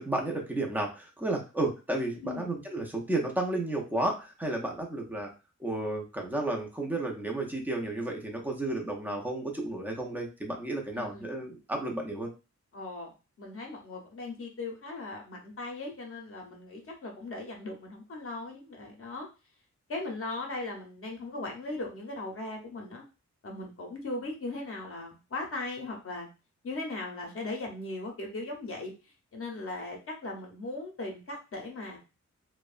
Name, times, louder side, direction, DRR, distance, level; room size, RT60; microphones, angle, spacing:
voice 1, 0.0-5.3 5.6-12.3, right 2 dB, 5° right, 1 dB, 0.5 m, -32 dB
voice 2, 10.9-11.3 12.7-13.1 13.4-19.3 19.9-23.0 23.4-26.3 26.6-28.9 29.3-30.0 30.2-32.0, left 2 dB, 50° left, 1 dB, 0.6 m, -38 dB
2.7 x 2.1 x 2.4 m, 0.30 s
wide cardioid pair, 165°, 29 cm